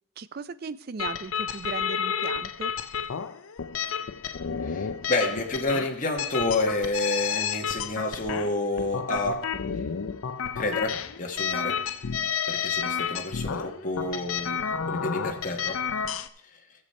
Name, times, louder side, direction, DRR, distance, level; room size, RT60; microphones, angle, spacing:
voice 1, 0.2-2.7, right 5 dB, 45° right, 15 dB, 0.4 m, -37 dB
sound 1, 1.0-16.3, left 7 dB, 85° left, 0.5 m, -31 dB
voice 2, 4.6-9.7 10.5-11.8 12.5-14.6 14.9-15.8, left 2 dB, 40° left, 1 dB, 1.2 m, -29 dB
16.0 x 7.1 x 4.3 m, 0.79 s
head